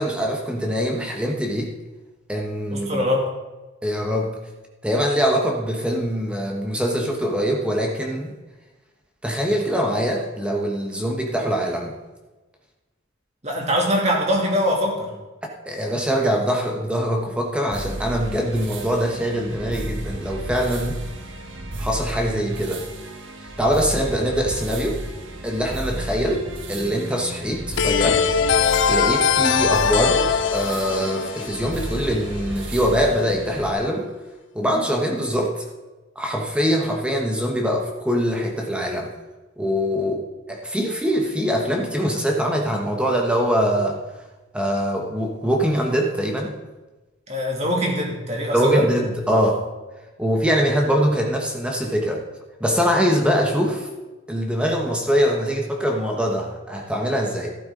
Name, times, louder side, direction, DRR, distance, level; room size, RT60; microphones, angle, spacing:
voice 1, 0.0-1.7 2.3-3.1 3.8-4.3 4.8-8.3 9.2-11.9 15.6-21.0 21.8-22.8 23.6-25.0 25.4-34.1 34.5-35.6 36.1-39.1 39.6-44.0 44.5-46.6 48.5-49.6 50.2-52.2 52.6-53.9 54.3-57.6, equal, 5° right, 0 dB, 1.2 m, -23 dB
voice 2, 2.7-3.3 13.4-15.1 47.3-48.9, equal, 35° right, -1 dB, 2.6 m, -22 dB
sound 1, 17.7-33.7, right 1 dB, 65° right, 1.6 m, -33 dB
sound 2, 27.8-32.4, left 7 dB, 65° left, 0.6 m, -21 dB
13.5 x 12.0 x 3.9 m, 1.2 s
head